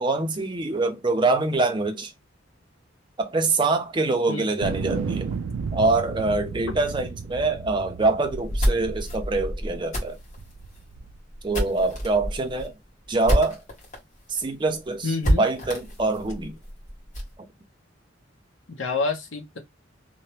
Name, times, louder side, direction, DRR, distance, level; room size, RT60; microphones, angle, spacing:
voice 1, 0.0-2.1 3.2-5.3 5.7-10.2 11.4-12.8 13.1-13.6 14.3-16.6 17.4-17.5, right 3 dB, 25° right, 0.5 m, -25 dB
sound 1, 4.6-9.8 10.4-11.2, right 5 dB, 90° right, 0.3 m, -33 dB
sound 2, 8.3-14.0 14.3-14.4 14.7-14.8 15.2-17.3, equal, 40° left, 1.2 m, -28 dB
voice 2, 15.0-15.4 18.7-19.6, left 3 dB, 75° left, 0.7 m, -28 dB
2.8 x 2.1 x 3.1 m
head